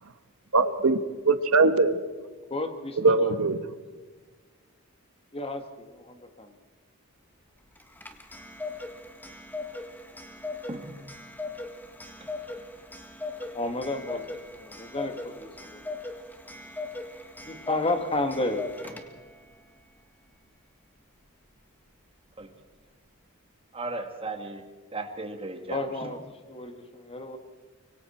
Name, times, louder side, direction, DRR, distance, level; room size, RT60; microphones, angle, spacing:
voice 1, 0.5-2.0 3.0-3.6, right 3 dB, 70° right, 1.2 m, -21 dB
voice 2, 2.5-3.3 5.3-6.5 13.5-15.8 17.4-18.6 25.7-27.4, left 2 dB, 25° left, 1.7 m, -32 dB
Clock, 7.8-19.4, left 3 dB, 10° left, 1.6 m, -39 dB
voice 3, 23.7-24.7 24.9-25.8, right 2 dB, 25° right, 2.0 m, -35 dB
25.5 x 23.5 x 4.4 m
head